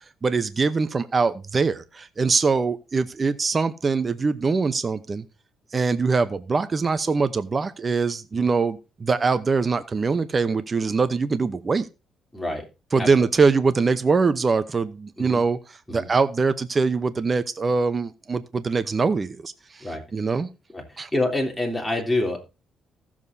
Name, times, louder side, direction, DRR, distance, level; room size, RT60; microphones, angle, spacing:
voice 1, 0.2-5.2 5.7-11.9 12.9-15.6 15.9-19.5 20.1-20.5 21.0-21.1, right 4 dB, 35° right, 13 dB, 0.8 m, -23 dB
voice 2, 12.3-12.6 13.0-13.1 15.2-15.4 15.9-16.1 19.8-20.0 20.7-22.4, left 2 dB, 5° left, 0 dB, 3.3 m, -27 dB
15.5 x 7.3 x 2.7 m, 0.28 s
cardioid pair, 90°, 0 cm